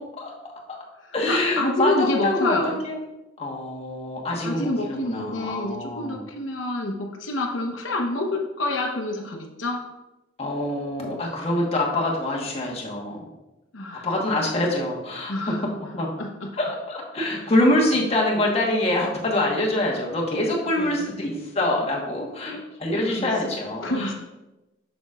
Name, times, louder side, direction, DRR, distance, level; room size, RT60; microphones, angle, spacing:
voice 1, 0.2-0.5 1.1-3.0 3.4-6.2 10.4-13.2 14.0-15.3 16.0-16.1 16.6-24.1, left 1 dB, 35° left, -2 dB, 1.2 m, -25 dB
voice 2, 1.3-2.7 4.4-9.8 13.7-14.1 15.3-16.5 17.9-18.1 20.8-21.2 23.1-23.5 23.8-24.1, left 1 dB, 75° left, 1 dB, 0.9 m, -28 dB
7.0 x 6.3 x 2.4 m, 1.0 s
head